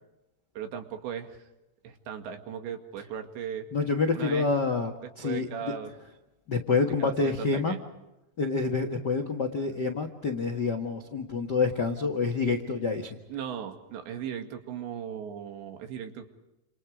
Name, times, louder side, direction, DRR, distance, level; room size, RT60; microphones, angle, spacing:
voice 1, 0.6-1.4 1.8-3.7 4.1-4.5 5.0-5.9 7.0-7.8 13.3-16.3, right 8 dB, 85° right, 6 dB, 4.4 m, -37 dB
voice 2, 3.7-4.9 5.2-5.7 6.5-7.8 8.4-13.2, left 4 dB, 85° left, 6 dB, 0.9 m, -27 dB
30.0 x 27.5 x 5.0 m, 0.95 s
omnidirectional pair, 4.9 m